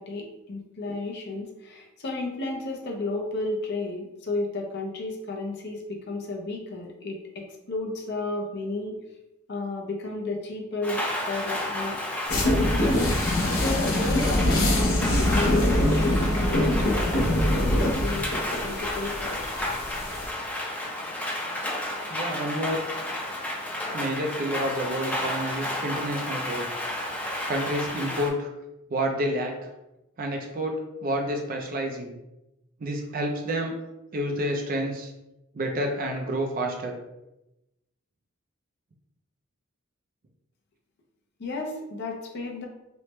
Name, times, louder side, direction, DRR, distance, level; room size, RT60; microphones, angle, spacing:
voice 1, 0.0-8.9 9.5-12.0 12.3-13.1 13.5-15.0 15.3-19.3 41.4-42.7, left 2 dB, 55° left, 1 dB, 0.5 m, -32 dB
Rain, 10.8-28.3, left 1 dB, 10° left, 0.5 m, -32 dB
sound 1, 12.3-20.3, left 1 dB, 85° left, 0.7 m, -24 dB
voice 2, 22.1-22.8 23.9-26.7 27.5-28.5 28.9-29.5 30.2-30.7 31.0-32.1 32.8-33.7 34.1-35.1 35.5-36.9, right 1 dB, 45° right, 2 dB, 0.4 m, -29 dB
3.2 x 2.1 x 2.9 m, 0.94 s
head